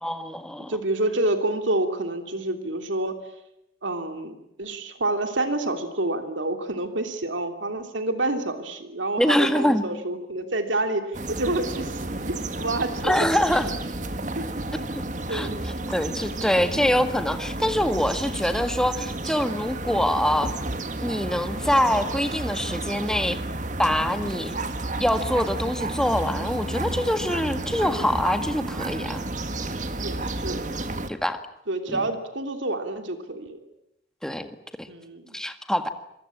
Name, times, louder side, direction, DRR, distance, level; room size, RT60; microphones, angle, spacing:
voice 1, 0.0-0.8 9.2-10.0 13.0-13.7 14.9-15.0 15.3-20.5 21.0-23.4 23.8-24.6 25.0-29.2 31.1-31.4 31.9-32.0 34.2-34.9 35.3-35.9, equal, 5° left, 8 dB, 1.7 m, -24 dB
voice 2, 0.7-3.1 3.8-13.3 14.3-14.5 15.3-15.7 30.0-30.7 31.7-33.6 34.9-35.3, right 2 dB, 90° right, 6 dB, 3.3 m, -28 dB
sound 1, 11.1-31.1, right 2 dB, 40° right, 1.7 m, -31 dB
26.5 x 23.5 x 8.7 m, 0.83 s
head